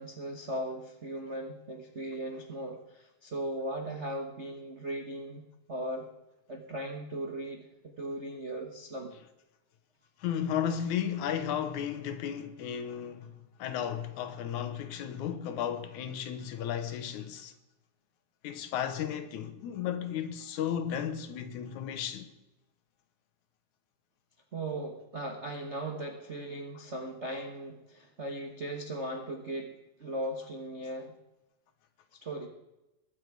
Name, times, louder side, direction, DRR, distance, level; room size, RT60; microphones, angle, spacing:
voice 1, 0.0-5.4 5.7-6.1 6.5-9.1 24.5-31.1 32.1-32.5, right 1 dB, 80° right, 0.6 m, -38 dB
voice 2, 10.2-17.5 18.4-22.3, left 9 dB, 75° left, 2.4 m, -34 dB
21.5 x 8.0 x 4.7 m
omnidirectional pair, 3.6 m